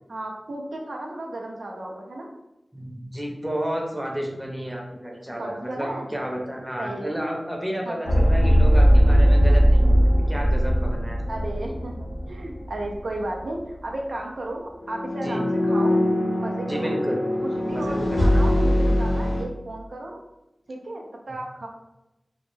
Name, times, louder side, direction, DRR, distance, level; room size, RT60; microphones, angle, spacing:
voice 1, 0.1-2.3 5.4-6.1 6.8-7.2 7.8-8.2 11.3-16.0 16.4-17.0 17.4-20.2 20.7-21.7, right 1 dB, 85° right, 0 dB, 0.4 m, -34 dB
voice 2, 2.7-11.2 15.2-15.4 16.7-17.2 17.7-18.4, equal, 10° right, -1 dB, 0.6 m, -31 dB
sound 1, 8.1-12.9 13.2-13.4 14.8-19.4, equal, 80° left, 0.5 m, -20 dB
2.1 x 2.0 x 3.1 m, 0.96 s
wide cardioid pair, 55°, 0 cm